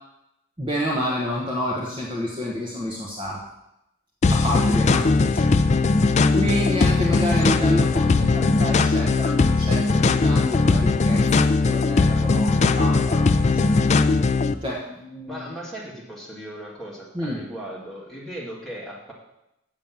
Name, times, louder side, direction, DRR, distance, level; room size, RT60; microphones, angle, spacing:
voice 1, 0.6-3.4 4.3-5.6 6.3-14.2 14.6-15.5 17.1-17.4, equal, 25° right, -3 dB, 1.2 m, -29 dB
sound 1, 4.2-14.5, left 3 dB, 30° left, 0.3 m, -19 dB
voice 2, 4.9-5.4 15.3-19.1, equal, ahead, -5 dB, 2.0 m, -37 dB
7.3 x 7.1 x 7.3 m, 0.88 s
head